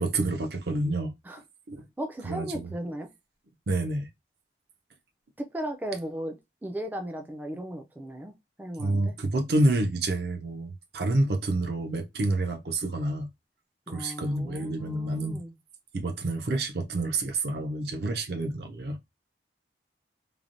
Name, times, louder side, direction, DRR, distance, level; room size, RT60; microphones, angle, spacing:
voice 1, 0.0-1.1 1.7-1.9 2.2-2.7 3.7-4.1 8.8-13.3 13.9-15.4 15.9-19.0, right 2 dB, 60° right, 0.6 m, -28 dB
voice 2, 2.0-3.1 5.4-6.4 6.6-8.3 8.6-9.2 13.9-15.5, right 1 dB, 10° right, 0.3 m, -36 dB
3.2 x 2.1 x 2.5 m
head